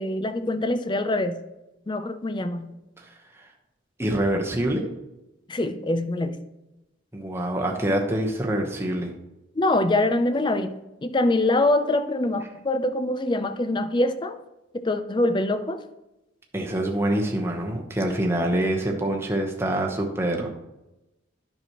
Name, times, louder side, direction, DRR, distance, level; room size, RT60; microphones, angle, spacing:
voice 1, 0.0-1.4 1.9-2.7 5.5-6.4 9.6-14.3 14.7-15.8, left 2 dB, 25° left, 9 dB, 0.5 m, -24 dB
voice 2, 3.0-3.5 4.0-4.9 7.1-9.1 16.5-20.5, right 1 dB, 15° right, 0 dB, 0.9 m, -26 dB
9.5 x 6.0 x 3.0 m, 0.96 s
head